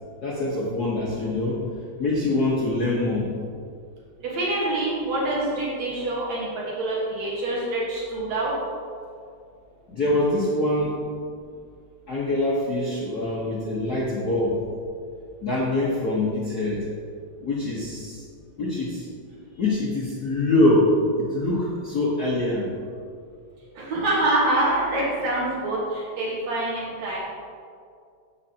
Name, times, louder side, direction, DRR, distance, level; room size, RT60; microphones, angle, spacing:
voice 1, 0.2-1.6 2.0-3.4 9.9-11.0 12.1-14.6 15.4-16.9 17.4-18.2 18.6-19.0 19.6-22.7, left 2 dB, 60° left, -6 dB, 1.0 m, -24 dB
voice 2, 4.3-6.5 6.8-8.5 23.8-27.2, right 2 dB, 70° right, -6 dB, 2.8 m, -25 dB
14.0 x 5.5 x 2.8 m, 2.2 s
omnidirectional pair, 3.3 m